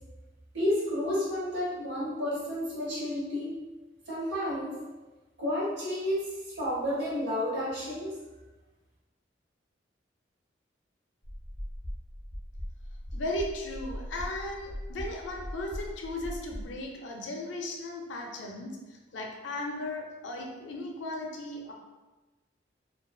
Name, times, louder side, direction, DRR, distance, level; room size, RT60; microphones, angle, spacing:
voice 1, 0.5-3.6 4.1-4.8 5.4-8.1, left 1 dB, 75° right, -8 dB, 0.9 m, -31 dB
sound 1, 11.2-16.8, equal, 15° left, 0.8 m, -40 dB
voice 2, 13.1-21.7, left 1 dB, 75° left, 1 dB, 0.4 m, -36 dB
2.4 x 2.2 x 2.3 m, 1.2 s
head